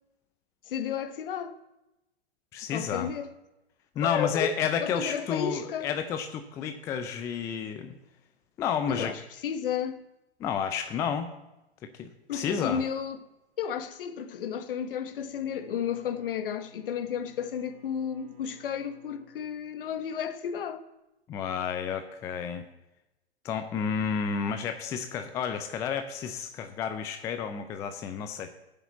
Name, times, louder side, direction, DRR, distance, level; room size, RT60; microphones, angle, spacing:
voice 1, 0.7-1.6 2.7-3.3 4.0-4.5 4.8-5.9 8.9-10.0 12.3-13.2 13.6-20.8, left 8 dB, 55° left, 1.2 m, -32 dB
voice 2, 2.5-3.1 4.0-8.0 8.6-9.1 10.4-11.3 11.8-12.8 21.3-22.7 23.4-28.5, left 7 dB, 10° left, 0.4 m, -31 dB
Bowed string instrument, 15.0-20.3, right 1 dB, 45° right, 2.9 m, -57 dB
8.1 x 6.5 x 8.2 m
figure-of-eight pair, 115°, 33 cm